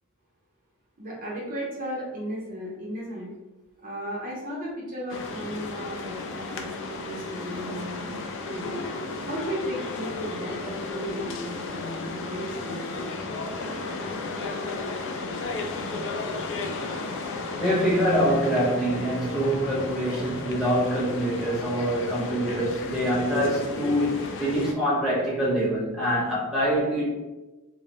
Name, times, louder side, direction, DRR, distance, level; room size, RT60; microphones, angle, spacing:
voice 1, 1.0-3.3 3.8-8.7 9.3-13.1, equal, 40° right, -4 dB, 0.5 m, -35 dB
sound 1, 5.1-24.7, left 3 dB, 55° left, 0.3 m, -34 dB
voice 2, 17.5-27.3, equal, ahead, -7 dB, 0.7 m, -25 dB
2.3 x 2.0 x 2.8 m, 1.1 s
head